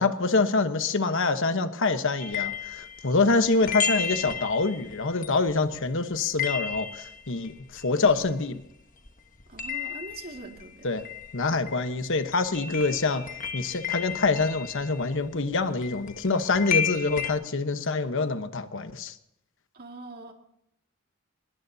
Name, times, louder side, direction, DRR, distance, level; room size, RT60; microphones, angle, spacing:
voice 1, 0.0-8.6 10.8-11.0 11.3-13.2 13.5-19.1, left 3 dB, 65° left, 9 dB, 1.2 m, -26 dB
sound 1, 2.2-8.8 9.1-17.3, left 7 dB, 40° left, 1.4 m, -34 dB
voice 2, 9.5-11.0 19.7-20.3, right 2 dB, 50° right, 3 dB, 2.2 m, -42 dB
23.0 x 21.0 x 2.8 m, 0.79 s
head